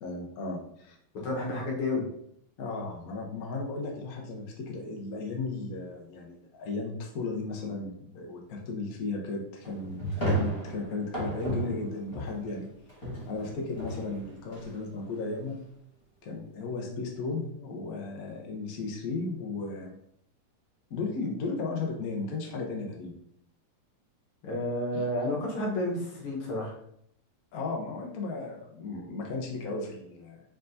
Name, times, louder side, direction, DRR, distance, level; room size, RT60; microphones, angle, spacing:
voice 1, 0.0-1.0 2.6-12.7 13.3-15.6 16.2-20.0 20.9-23.2 24.9-25.0 27.5-30.4, left 3 dB, 60° left, 1 dB, 1.0 m, -35 dB
voice 2, 1.1-2.0 24.4-26.7, left 1 dB, 80° left, -2 dB, 1.9 m, -30 dB
sound 1, 9.6-12.6 12.9-15.3, right 1 dB, 15° left, 1.7 m, -34 dB
4.6 x 3.7 x 2.6 m, 0.72 s
omnidirectional pair, 2.4 m